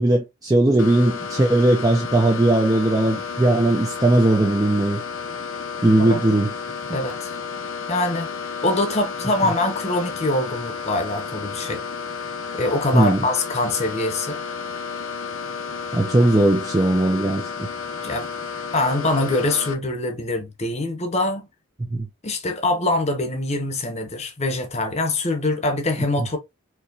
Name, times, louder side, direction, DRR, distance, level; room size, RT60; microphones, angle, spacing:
voice 1, 0.0-5.0 5.8-6.5 6.9-7.0 12.9-13.2 15.9-17.7 21.9-22.1, right 1 dB, 15° right, 0.5 m, -18 dB
sound 1, 0.8-19.7, left 5 dB, 60° left, 0.7 m, -32 dB
voice 2, 6.9-7.3 7.9-8.3 8.6-11.8 12.5-14.4 18.0-18.3 18.7-21.5 22.2-26.4, left 2 dB, 30° left, 0.8 m, -24 dB
4.6 x 2.9 x 2.7 m
head